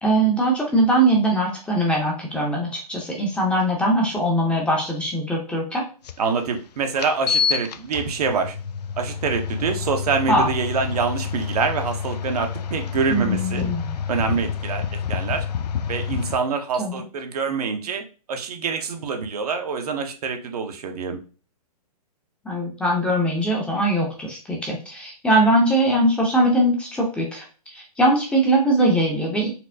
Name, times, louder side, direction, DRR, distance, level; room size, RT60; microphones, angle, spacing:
voice 1, 0.0-5.8 10.3-10.5 13.1-14.0 16.8-17.0 22.4-29.5, right 1 dB, 5° left, -1 dB, 0.6 m, -21 dB
sound 1, 6.0-6.1 7.0-16.4, left 7 dB, 80° left, 0.4 m, -28 dB
voice 2, 6.2-8.5 9.0-13.7 14.1-14.8 15.1-15.4 15.9-18.0 18.3-21.2, right 5 dB, 70° right, 5 dB, 0.7 m, -25 dB
4.2 x 2.0 x 2.6 m, 0.35 s
hypercardioid pair, 140°, 20 cm